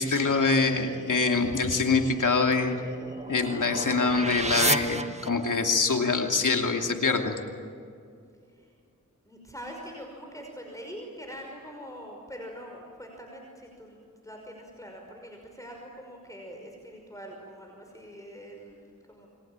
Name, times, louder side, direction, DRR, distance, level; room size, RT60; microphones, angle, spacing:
voice 1, 0.0-2.8 3.3-7.3, left 4 dB, 80° left, 3 dB, 2.8 m, -24 dB
sound 1, 2.4-5.8, right 2 dB, 20° right, 1.3 m, -32 dB
voice 2, 9.3-19.3, equal, 10° left, 1 dB, 5.7 m, -44 dB
28.5 x 23.5 x 9.0 m, 2.3 s
wide cardioid pair, 60°, 31 cm